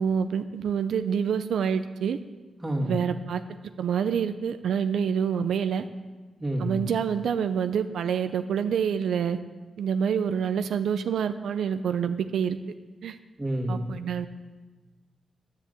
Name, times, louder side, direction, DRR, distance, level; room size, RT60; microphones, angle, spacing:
voice 1, 0.0-2.2 2.8-3.4 3.8-5.8 6.6-9.4 9.8-12.6 13.0-13.2 13.7-14.3, right 7 dB, 85° right, 9 dB, 0.5 m, -27 dB
voice 2, 2.6-3.0 6.4-6.9 13.4-13.8, right 1 dB, 10° right, -1 dB, 2.3 m, -28 dB
10.5 x 7.4 x 7.9 m, 1.3 s
wide cardioid pair, 120°, 0 cm